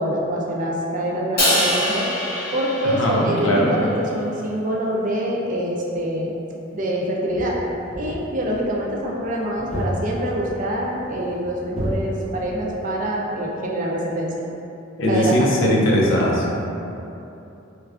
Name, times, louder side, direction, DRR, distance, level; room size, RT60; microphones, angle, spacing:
voice 1, 0.0-2.1 2.5-6.3 6.7-7.6 8.0-14.5 15.1-15.5, right 1 dB, 40° right, -2 dB, 0.4 m, -25 dB
Crash cymbal, 1.4-3.8, equal, 50° left, 1.3 m, -23 dB
voice 2, 2.8-3.7 15.0-16.4, equal, 70° left, -4 dB, 0.6 m, -19 dB
sound 1, 7.3-12.9, equal, 35° left, 0.7 m, -32 dB
4.5 x 2.2 x 2.4 m, 2.9 s
head